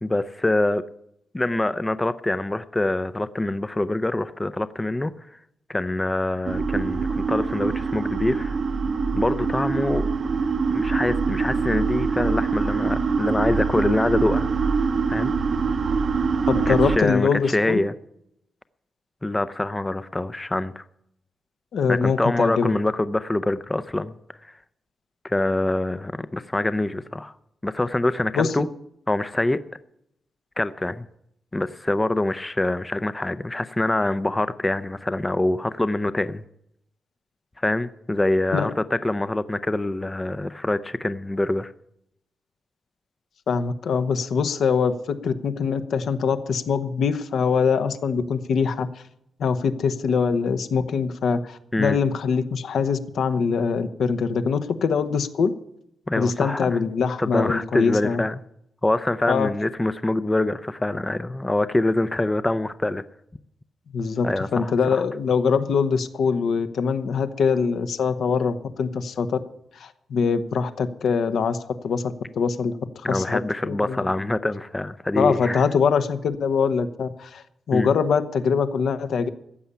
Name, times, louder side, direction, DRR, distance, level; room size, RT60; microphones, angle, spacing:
voice 1, 0.0-0.8 1.3-5.1 5.7-8.6 9.1-10.1 10.7-14.5 15.1-15.3 16.7-17.9 19.2-20.8 21.9-24.1 24.4-24.5 25.2-27.3 27.6-28.7 29.1-29.6 30.6-31.1 31.5-36.4 37.6-41.7 51.7-52.0 56.1-56.8 57.2-58.4 58.8-63.0 64.2-65.0 73.0-75.6 77.7-77.9, left 2 dB, 15° left, 0.5 m, -25 dB
sound 1, 6.4-17.0, right 5 dB, 45° right, 0.7 m, -24 dB
voice 2, 16.5-17.8 21.7-22.7 28.3-28.5 38.5-38.7 43.5-48.9 49.4-55.5 56.2-58.2 59.3-59.5 63.9-69.4 69.7-72.8 73.1-74.1 75.2-79.3, left 5 dB, 75° left, 1.0 m, -23 dB
15.0 x 7.0 x 10.0 m
wide cardioid pair, 155°, 0 cm